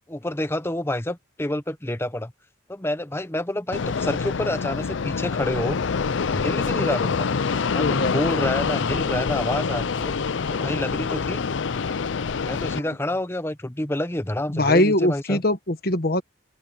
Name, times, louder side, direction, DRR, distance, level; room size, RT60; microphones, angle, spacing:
voice 1, 0.1-2.3 2.7-5.8 6.3-7.3 7.7-10.1 10.5-11.4 12.4-15.4, left 1 dB, 15° left, 1.0 m, -28 dB
Fixed-wing aircraft airplane, 3.7-12.8, left 5 dB, 75° left, 0.6 m, -26 dB
voice 2, 7.8-8.2 14.5-16.2, left 1 dB, 50° left, 1.5 m, -21 dB
open air
head